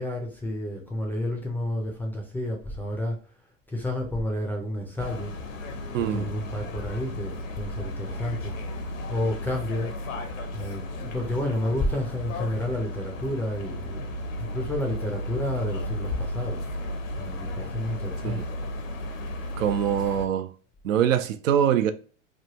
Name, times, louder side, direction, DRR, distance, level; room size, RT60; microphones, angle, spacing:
voice 1, 0.0-3.2 3.7-5.3 6.0-8.5 9.1-9.9 10.5-14.1 14.4-16.6 17.2-18.4, left 1 dB, 5° left, 0.4 m, -30 dB
sound 1, 5.0-20.3, left 1 dB, 80° left, 0.8 m, -34 dB
voice 2, 5.9-6.3 18.2-18.4 19.6-20.5 20.8-21.9, right 9 dB, 75° right, 0.5 m, -23 dB
3.2 x 2.2 x 2.8 m
hypercardioid pair, 105°, 39 cm